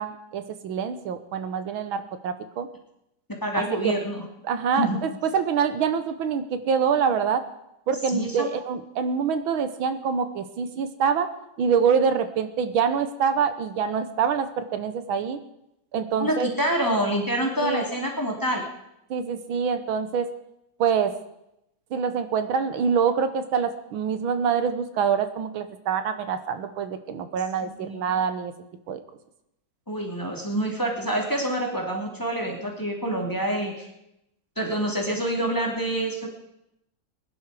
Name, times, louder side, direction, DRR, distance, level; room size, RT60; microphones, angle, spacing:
voice 1, 0.0-2.7 3.5-3.9 4.4-7.4 7.9-11.3 11.6-15.4 15.9-16.5 17.6-17.8 19.1-20.3 20.8-21.1 21.9-28.5 28.9-29.0, right 6 dB, 90° right, 9 dB, 1.9 m, -25 dB
voice 2, 3.4-4.2 4.8-5.0 8.1-8.5 16.2-18.6 27.6-28.0 29.9-33.9 34.6-36.3, right 1 dB, 10° left, 0 dB, 2.3 m, -27 dB
21.0 x 11.0 x 4.8 m, 0.84 s
omnidirectional pair, 2.1 m